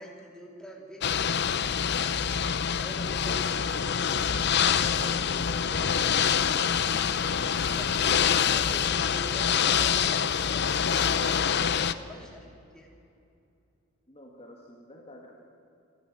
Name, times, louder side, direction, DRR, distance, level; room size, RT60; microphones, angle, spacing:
voice 1, 0.0-2.5 2.8-12.4 12.7-12.9, right 1 dB, 5° left, -1 dB, 3.1 m, -46 dB
Ocean / Boat Water vehicle, 1.0-11.9, left 7 dB, 50° left, 0.7 m, -26 dB
voice 2, 14.1-15.4, left 1 dB, 30° left, 0 dB, 2.0 m, -50 dB
26.0 x 13.5 x 8.6 m, 2.6 s
head